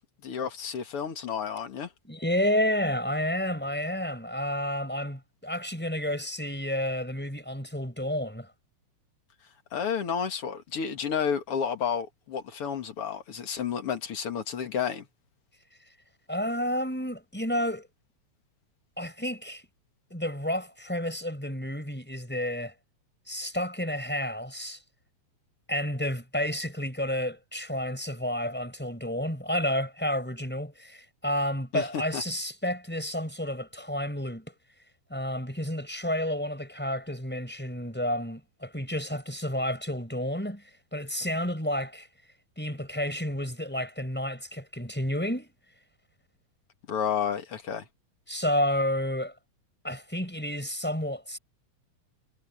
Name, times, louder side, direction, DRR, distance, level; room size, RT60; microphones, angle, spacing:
voice 1, 0.2-1.9 9.7-15.1 31.7-32.2 46.9-47.8, left 7 dB, 50° left, 2.5 m, -31 dB
voice 2, 2.0-8.5 16.3-17.9 19.0-19.6 20.1-22.7 23.3-24.8 25.7-34.5 35.1-40.6 40.9-42.1 42.6-45.5 48.3-49.3 49.8-51.4, equal, 5° left, 5.9 m, -30 dB
omnidirectional pair, 3.5 m